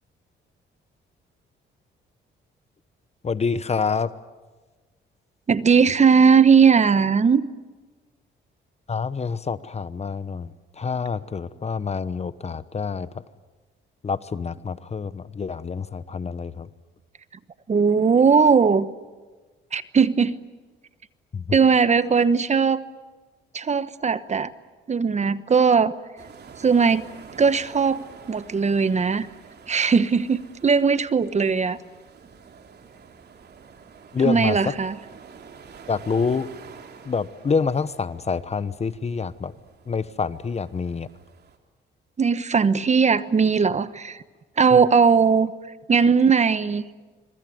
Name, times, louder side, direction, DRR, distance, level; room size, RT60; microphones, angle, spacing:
voice 1, 3.2-4.1 8.9-13.1 14.0-16.7 21.3-21.6 34.1-34.7 35.9-36.5 37.0-39.5 39.9-41.1 44.7-44.8, left 5 dB, 35° left, 15 dB, 1.0 m, -27 dB
voice 2, 5.5-7.5 17.7-18.9 19.7-20.3 21.5-22.8 23.5-24.5 24.9-25.9 26.6-27.0 27.3-28.0 28.3-29.3 29.7-31.8 34.2-34.9 42.2-44.2 44.6-45.5 45.9-46.8, right 5 dB, 35° right, 14 dB, 1.1 m, -18 dB
sound 1, 26.2-41.6, right 6 dB, 55° right, 3.2 m, -48 dB
26.0 x 23.5 x 9.4 m, 1.3 s
cardioid pair, 90°, 20 cm